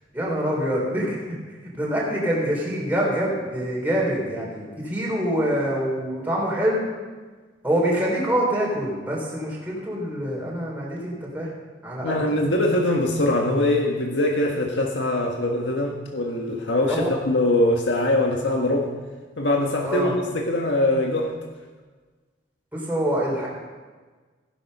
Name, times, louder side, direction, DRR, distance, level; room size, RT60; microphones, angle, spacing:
voice 1, 0.1-6.9 7.6-11.5 11.8-12.4 16.9-17.1 19.8-20.2 22.7-23.5, equal, 10° right, -4 dB, 4.0 m, -25 dB
voice 2, 12.0-18.9 19.4-21.3, left 1 dB, 85° left, 1 dB, 1.6 m, -22 dB
16.0 x 11.0 x 5.5 m, 1.4 s
head